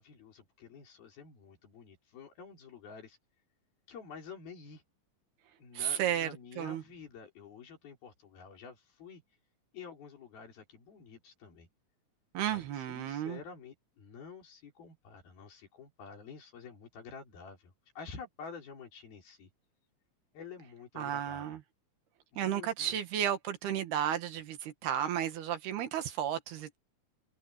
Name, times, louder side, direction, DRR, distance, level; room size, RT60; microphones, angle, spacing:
voice 1, 0.0-3.2 3.9-4.8 5.6-9.2 9.7-11.7 12.5-19.5 20.3-21.6 22.3-23.0, left 5 dB, 70° left, 5.9 m, -49 dB
voice 2, 5.8-6.3 6.6-6.8 12.4-13.4 21.0-21.6 22.4-26.8, right 10 dB, 80° right, 3.8 m, -33 dB
omnidirectional pair, 4.4 m